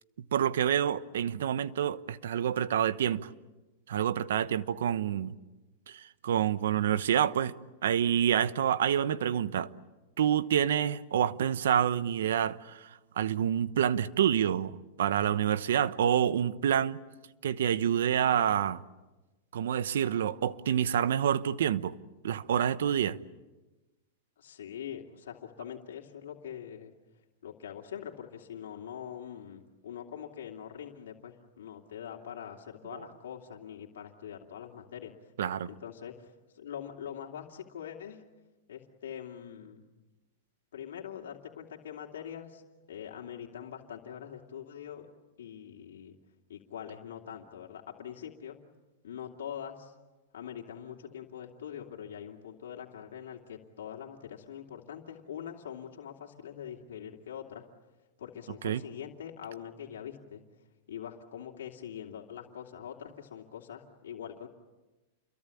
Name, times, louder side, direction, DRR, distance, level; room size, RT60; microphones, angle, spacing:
voice 1, 0.3-3.3 3.9-5.3 5.9-7.5 7.8-9.7 10.2-12.9 13.2-17.0 17.4-18.8 19.5-21.9 22.2-23.2 35.4-35.7 58.6-58.8, right 9 dB, 85° right, 1.1 m, -27 dB
voice 2, 24.4-26.9 27.4-35.3 35.6-38.2 38.7-39.8 40.7-42.6 42.9-45.1 45.4-46.2 46.5-48.6 49.0-49.9 50.3-57.7 58.2-60.4 60.9-64.5, left 9 dB, 90° left, 2.8 m, -43 dB
29.0 x 23.0 x 8.5 m
supercardioid pair, 145°, 0 cm